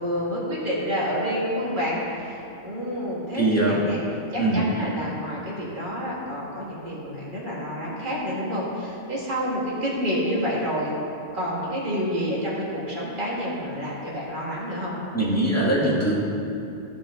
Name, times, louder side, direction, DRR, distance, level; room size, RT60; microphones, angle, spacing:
voice 1, 0.0-4.0 4.3-10.9 11.3-14.9, equal, 45° right, -6 dB, 2.2 m, -28 dB
voice 2, 3.4-3.8 4.4-4.6 15.1-16.1, right 2 dB, 15° left, -6 dB, 1.8 m, -21 dB
15.0 x 5.8 x 3.7 m, 2.8 s
omnidirectional pair, 1.2 m